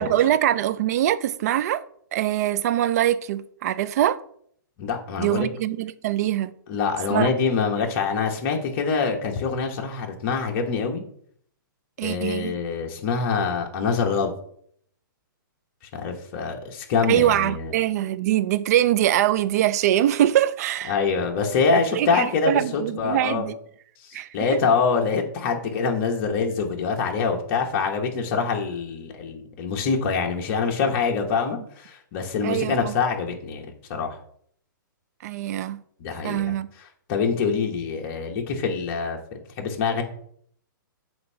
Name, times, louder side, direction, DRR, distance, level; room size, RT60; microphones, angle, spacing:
voice 1, 0.0-1.8 2.1-4.2 5.2-6.5 7.1-7.3 12.0-12.5 17.1-20.9 21.7-23.5 24.1-24.3 32.4-32.9 35.2-35.8 36.2-36.7, right 12 dB, 50° right, 0.4 m, -23 dB
voice 2, 4.8-5.5 6.7-11.0 12.0-14.3 15.9-17.7 20.9-23.5 24.0-34.2 36.0-36.6 37.1-40.0, left 5 dB, 40° left, 1.1 m, -25 dB
7.8 x 2.7 x 5.6 m
hypercardioid pair, 145°, 11 cm